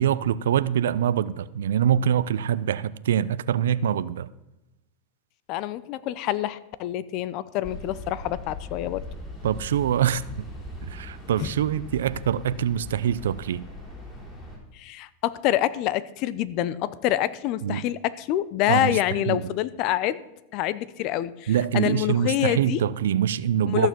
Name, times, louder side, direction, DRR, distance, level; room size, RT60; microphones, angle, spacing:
voice 1, 0.0-4.3 9.4-10.5 10.9-13.6 17.6-17.8 18.7-19.0 19.3-19.5 21.5-23.9, right 9 dB, 85° right, 0.5 m, -24 dB
voice 2, 5.5-9.1 11.4-11.5 14.7-20.2 20.5-22.8 23.7-23.9, left 13 dB, 50° left, 0.7 m, -26 dB
sound 1, 7.6-14.6, left 2 dB, 15° left, 4.9 m, -40 dB
14.0 x 6.9 x 6.1 m
supercardioid pair, 125°, 0 cm